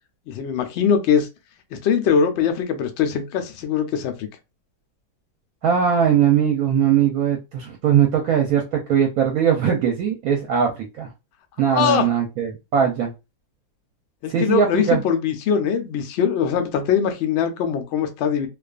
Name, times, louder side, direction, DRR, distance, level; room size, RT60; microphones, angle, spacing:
voice 1, 0.3-1.3 1.7-4.3 11.7-12.1 14.2-18.5, left 7 dB, 80° left, 0.6 m, -22 dB
voice 2, 5.6-10.7 11.0-11.1 11.6-13.1 14.3-15.0, right 8 dB, 70° right, 0.9 m, -20 dB
2.4 x 2.3 x 2.3 m
omnidirectional pair, 1.7 m